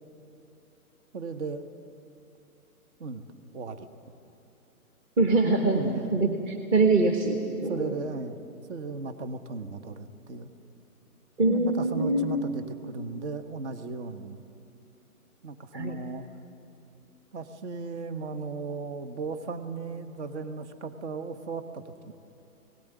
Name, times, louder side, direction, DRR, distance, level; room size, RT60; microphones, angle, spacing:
voice 1, 1.1-1.6 3.0-3.3 3.5-3.9 5.7-6.2 7.7-8.4 8.7-10.5 11.5-14.4 15.4-16.2 17.3-22.1, right 4 dB, 50° right, 8 dB, 1.3 m, -36 dB
voice 2, 5.2-8.0 11.4-12.4 15.7-16.0, right 3 dB, 20° right, 2 dB, 1.2 m, -24 dB
18.5 x 17.5 x 9.2 m, 2.6 s
hypercardioid pair, 140°, 45 cm